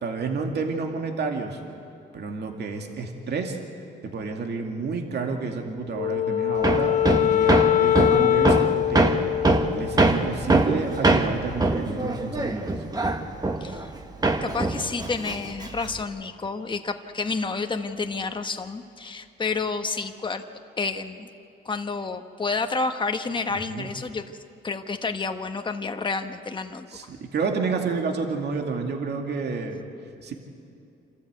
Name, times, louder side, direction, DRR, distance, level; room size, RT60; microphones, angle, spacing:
voice 1, 0.0-1.6 2.1-3.6 4.0-9.1 9.7-12.8 23.5-23.9 26.9-29.8 30.2-30.3, right 4 dB, 55° right, 2 dB, 2.4 m, -30 dB
Wind instrument woodwind instrument, 5.9-10.4, left 11 dB, 40° left, 0.5 m, -23 dB
Hammer, 6.6-14.0 14.2-16.0, right 2 dB, 20° right, 1.6 m, -23 dB
voice 2, 14.4-20.4 20.8-21.3 21.6-24.2 24.6-26.9, left 4 dB, 25° left, 7 dB, 1.2 m, -29 dB
27.0 x 14.0 x 8.2 m, 2.6 s
cardioid pair, 90°, 20 cm